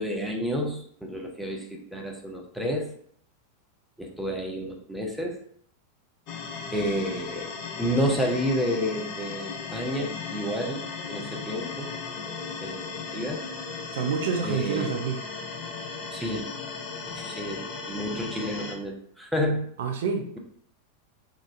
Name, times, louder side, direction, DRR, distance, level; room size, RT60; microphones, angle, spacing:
voice 1, 0.0-2.9 4.0-5.4 6.7-7.5 7.8-11.9 12.6-13.4 14.4-14.9 16.1-16.5 17.1-19.7, equal, ahead, 0 dB, 0.6 m, -30 dB
sound 1, 6.3-18.7, left 4 dB, 45° left, 0.6 m, -36 dB
voice 2, 13.9-15.2 19.8-20.4, right 5 dB, 60° right, 4 dB, 0.4 m, -28 dB
3.8 x 2.4 x 2.5 m, 0.64 s
figure-of-eight pair, 90°, 0 cm